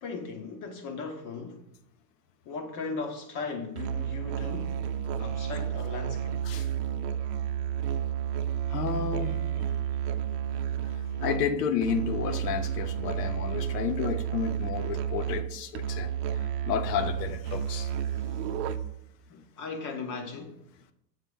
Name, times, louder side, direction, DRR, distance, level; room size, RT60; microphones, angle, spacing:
voice 1, 0.0-1.7 2.5-4.8 5.2-6.4 11.1-11.2 19.3-20.6, left 4 dB, 40° left, 0.8 m, -37 dB
Musical instrument, 3.8-19.1, right 9 dB, 70° right, 0.6 m, -31 dB
voice 2, 8.7-9.4 10.9-16.1 16.6-17.9, left 7 dB, 75° left, 0.8 m, -31 dB
6.4 x 4.0 x 3.8 m
supercardioid pair, 120°, 50 cm